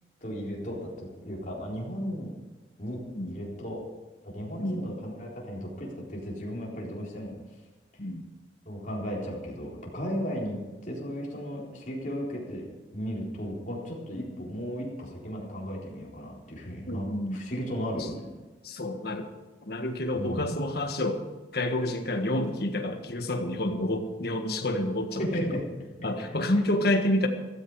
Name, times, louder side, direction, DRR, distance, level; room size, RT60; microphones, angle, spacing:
voice 1, 0.2-2.4 2.8-3.8 4.2-7.4 8.7-12.7 12.9-17.1 17.3-18.3 20.1-20.6 25.2-25.6 26.5-26.8, equal, 45° left, -3 dB, 4.0 m, -35 dB
voice 2, 16.9-17.4 18.0-18.1 18.6-19.3 19.6-21.2 21.5-25.6 26.0-27.3, left 1 dB, 60° left, 5 dB, 1.6 m, -29 dB
15.0 x 14.0 x 4.8 m, 1.3 s
head